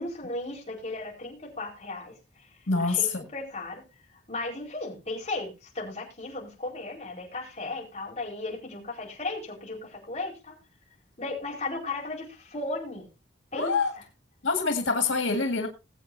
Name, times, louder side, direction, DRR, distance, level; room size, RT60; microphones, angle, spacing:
voice 1, 0.0-2.1 2.4-3.8 4.3-10.6 11.2-13.1 13.5-14.0, left 2 dB, 35° left, 4.7 m, -36 dB
voice 2, 2.7-3.2 13.5-13.9 14.4-15.7, left 4 dB, 90° left, 2.0 m, -25 dB
20.0 x 8.2 x 2.7 m
head